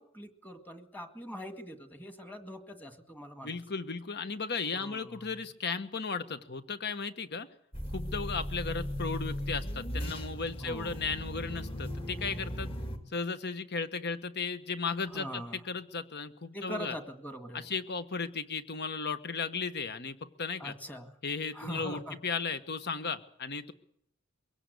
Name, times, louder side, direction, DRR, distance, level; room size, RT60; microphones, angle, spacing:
voice 1, 0.0-3.6 4.8-5.4 10.6-11.0 15.1-15.6 16.5-17.7 20.6-21.1 21.5-22.2, equal, 10° left, 7 dB, 1.9 m, -43 dB
voice 2, 3.4-7.5 7.9-12.7 13.1-16.9 17.5-20.7 21.2-23.7, left 5 dB, 50° left, 11 dB, 1.4 m, -35 dB
sound 1, 7.7-13.0, equal, 25° left, 2.5 m, -37 dB
23.5 x 17.0 x 8.2 m, 0.69 s
head